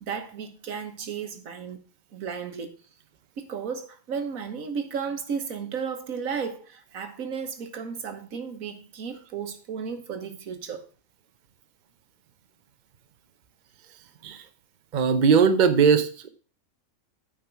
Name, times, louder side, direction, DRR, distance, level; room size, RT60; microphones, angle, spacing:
voice 1, 0.0-1.8 2.1-2.7 3.4-10.9, right 6 dB, 90° right, 1.6 m, -34 dB
voice 2, 14.9-16.3, right 6 dB, 40° right, 0.8 m, -20 dB
9.1 x 5.1 x 5.8 m
omnidirectional pair, 1.4 m